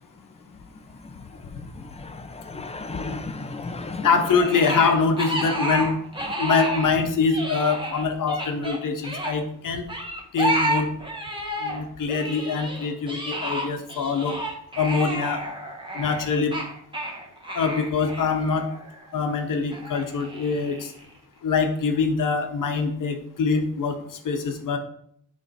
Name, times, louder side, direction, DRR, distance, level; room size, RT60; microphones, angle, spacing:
voice 1, 1.0-4.1, left 3 dB, 20° left, 8 dB, 0.6 m, -35 dB
voice 2, 4.0-5.9 6.4-9.8 10.3-10.9 11.6-14.4 14.8-15.4 15.9-16.5 17.5-18.7 19.1-20.9 21.4-24.0 24.2-24.8, left 5 dB, 85° left, 6 dB, 1.0 m, -24 dB
sound 1, 4.3-7.0 7.2-9.3 9.9-11.8 12.1-19.1 19.7-21.0, right 1 dB, 15° right, 1.2 m, -30 dB
9.8 x 3.4 x 4.2 m, 0.68 s
wide cardioid pair, 165°, 31 cm